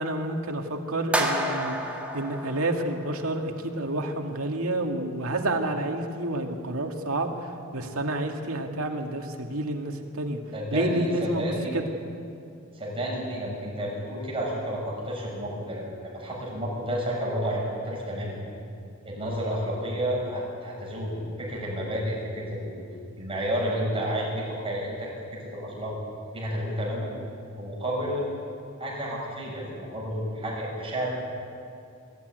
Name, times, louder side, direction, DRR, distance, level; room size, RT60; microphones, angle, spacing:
voice 1, 0.0-1.8 2.1-7.3 7.7-10.4 10.7-11.9, right 1 dB, 85° right, 3 dB, 2.2 m, -29 dB
sound 1, 1.1-3.4, right 1 dB, 5° right, 2.0 m, -30 dB
voice 2, 10.5-11.7 12.7-18.3 19.0-22.7 23.2-25.1 25.5-25.9 26.3-27.1 27.6-28.3 28.8-31.1, equal, 25° right, -4 dB, 6.8 m, -31 dB
22.5 x 14.5 x 9.4 m, 2.6 s
head